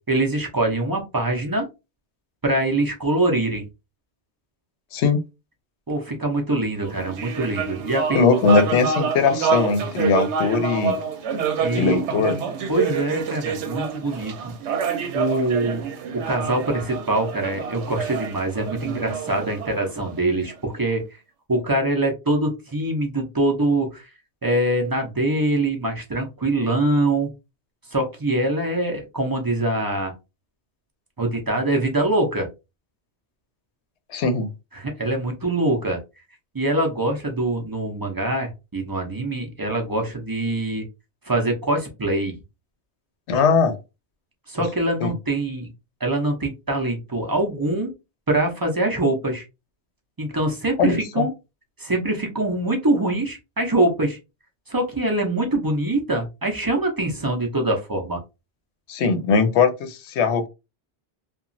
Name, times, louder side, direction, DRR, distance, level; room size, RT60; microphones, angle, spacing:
voice 1, 0.1-1.7 2.4-3.6 5.9-8.2 11.6-12.0 12.7-14.5 15.1-15.9 16.1-21.2 21.5-24.1 24.4-27.3 27.9-30.1 31.2-32.5 34.7-36.0 36.5-40.8 41.2-42.4 44.5-45.7 46.0-47.9 48.3-49.4 50.2-51.3 51.8-54.2 54.7-58.2, right 1 dB, 30° right, 2 dB, 0.4 m, -24 dB
sound 1, 6.8-20.5, right 6 dB, 80° right, 0.9 m, -27 dB
voice 2, 8.1-11.0 11.8-12.3 34.1-34.5 43.3-43.8 45.0-45.1 50.8-51.2 58.9-60.5, left 5 dB, 75° left, 9 dB, 0.8 m, -20 dB
2.9 x 2.3 x 2.5 m, 0.26 s
omnidirectional pair, 1.2 m